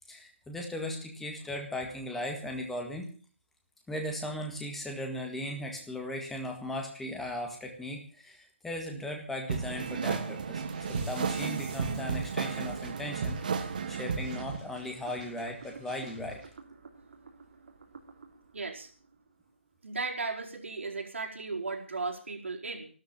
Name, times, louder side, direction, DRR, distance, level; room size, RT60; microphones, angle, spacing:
voice 1, 0.1-3.1 3.9-10.6 10.9-16.4, left 1 dB, 5° left, 2 dB, 1.8 m, -37 dB
sound 1, 9.5-14.6, right 5 dB, 40° right, 1.8 m, -33 dB
sound 2, 10.6-16.5, right 4 dB, 25° right, 5.4 m, -54 dB
sound 3, 12.9-19.9, right 4 dB, 60° right, 3.4 m, -52 dB
voice 2, 18.5-18.9 19.8-22.9, right 3 dB, 90° right, 0 dB, 4.6 m, -36 dB
13.0 x 13.0 x 7.3 m, 0.41 s
hypercardioid pair, 175°, 7 cm